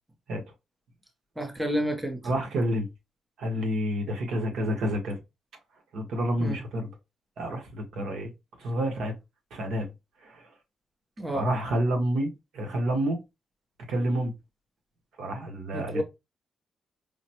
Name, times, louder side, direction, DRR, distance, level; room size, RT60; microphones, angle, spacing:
voice 1, 1.4-2.2 6.4-6.6 11.2-11.5 15.7-16.0, equal, 5° right, 0.6 m, -30 dB
voice 2, 2.2-2.9 3.4-5.2 5.9-6.9 7.4-8.3 8.6-9.1 9.5-9.9 10.2-10.4 11.3-13.2 13.9-14.3 15.2-16.0, equal, 75° right, 1.1 m, -29 dB
4.9 x 2.1 x 2.9 m
wide cardioid pair, 165°, 0 cm